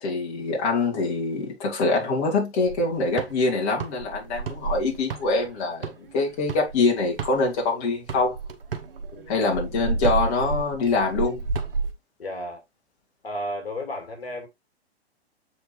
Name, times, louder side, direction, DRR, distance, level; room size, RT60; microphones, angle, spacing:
voice 1, 0.0-8.4 9.3-11.4, left 3 dB, 35° left, 2.4 m, -24 dB
sound 1, 2.7-7.7 8.1-11.9, right 4 dB, 60° right, 1.2 m, -31 dB
voice 2, 9.1-9.5 12.2-12.6 13.2-14.5, left 1 dB, 65° left, 2.3 m, -33 dB
7.7 x 4.4 x 3.2 m
figure-of-eight pair, 115°, 32 cm